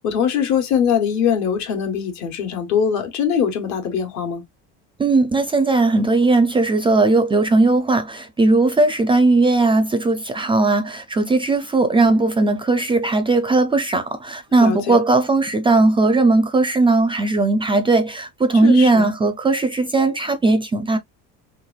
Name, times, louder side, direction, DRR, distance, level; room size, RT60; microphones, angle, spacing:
voice 1, 0.0-4.4 14.6-15.0 18.6-19.1, left 7 dB, 60° left, 1.3 m, -22 dB
voice 2, 5.0-21.0, right 3 dB, 15° right, 0.4 m, -17 dB
3.4 x 3.2 x 2.3 m
cardioid pair, 115°, 32 cm